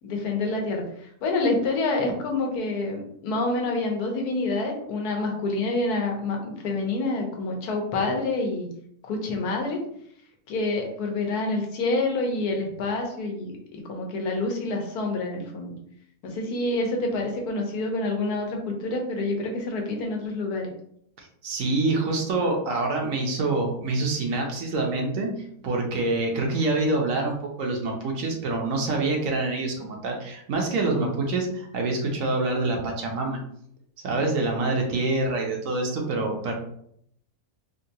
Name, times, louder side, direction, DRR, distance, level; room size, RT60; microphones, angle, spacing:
voice 1, 0.0-8.7 9.0-9.8 10.5-15.7 16.2-20.7, left 2 dB, 90° left, 2 dB, 1.3 m, -27 dB
voice 2, 21.2-25.3 25.6-33.4 34.0-36.5, right 2 dB, 65° right, 1 dB, 1.0 m, -26 dB
3.7 x 2.2 x 2.7 m, 0.69 s
omnidirectional pair, 1.6 m